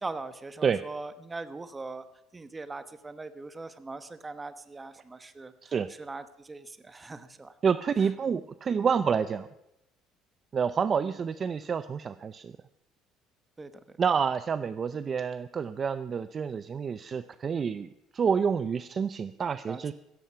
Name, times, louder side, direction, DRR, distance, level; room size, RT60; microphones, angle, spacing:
voice 1, 0.0-2.0 2.3-5.7 6.0-7.5 11.0-11.1 13.6-14.0 19.7-19.9, right 3 dB, 15° right, 12 dB, 1.0 m, -41 dB
voice 2, 7.6-9.5 10.5-12.5 14.0-17.9 18.1-19.9, right 6 dB, 30° right, 13 dB, 0.5 m, -28 dB
16.0 x 14.0 x 5.7 m, 0.86 s
cardioid pair, 125°, 0 cm